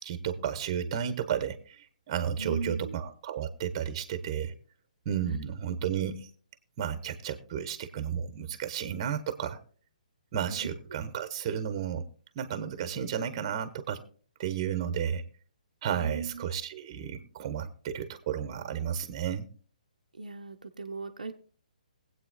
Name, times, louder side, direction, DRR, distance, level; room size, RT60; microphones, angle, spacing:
voice 1, 0.0-4.5 5.0-6.3 6.8-9.6 10.3-12.0 12.3-14.0 14.4-15.2 15.8-19.5, right 8 dB, 35° right, 10 dB, 1.1 m, -32 dB
voice 2, 2.4-2.9 5.3-5.4 10.5-10.7 15.9-16.5 20.1-21.3, right 4 dB, 70° right, 6 dB, 0.7 m, -38 dB
22.0 x 8.3 x 2.2 m, 0.43 s
figure-of-eight pair, 130°, 4 cm